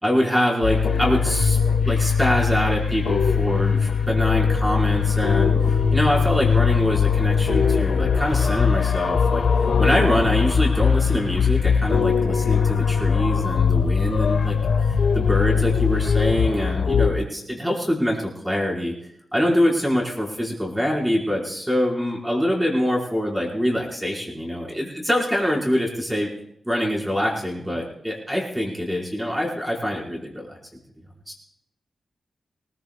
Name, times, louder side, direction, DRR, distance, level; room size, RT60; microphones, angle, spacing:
voice 1, 0.0-1.6 1.9-9.4 9.8-14.6 15.1-18.9 19.3-26.3 26.6-30.6 31.3-31.4, equal, 5° right, -2 dB, 4.2 m, -24 dB
sound 1, 0.6-17.1, left 6 dB, 80° left, 1.7 m, -20 dB
24.0 x 21.0 x 2.2 m, 0.71 s
wide cardioid pair, 160°, 0 cm